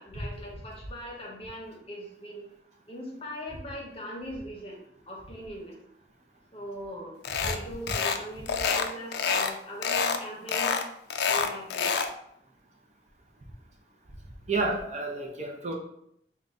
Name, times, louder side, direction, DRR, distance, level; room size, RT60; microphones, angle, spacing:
voice 1, 0.0-2.4 2.9-4.8 5.1-5.8 6.5-7.1 7.4-10.7 11.3-11.9, equal, 30° left, -1 dB, 0.8 m, -40 dB
sound 1, 7.2-7.6 7.9-8.2 8.5-9.5 9.8-10.2 10.5-12.1, left 6 dB, 65° left, 0.3 m, -27 dB
voice 2, 14.5-15.7, right 3 dB, 40° right, 1 dB, 0.5 m, -30 dB
3.8 x 2.2 x 3.6 m, 0.72 s
head